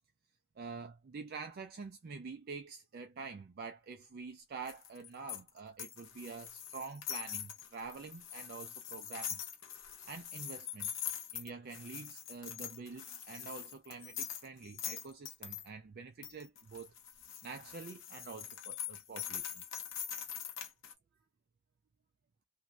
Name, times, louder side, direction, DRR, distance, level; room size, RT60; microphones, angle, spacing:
voice 1, 0.6-9.4 10.1-10.9 11.3-16.9 17.4-19.6, right 4 dB, 45° right, 0.4 m, -47 dB
sound 1, 4.6-15.6 16.2-20.9, left 9 dB, 60° left, 0.7 m, -43 dB
2.6 x 2.2 x 3.1 m
head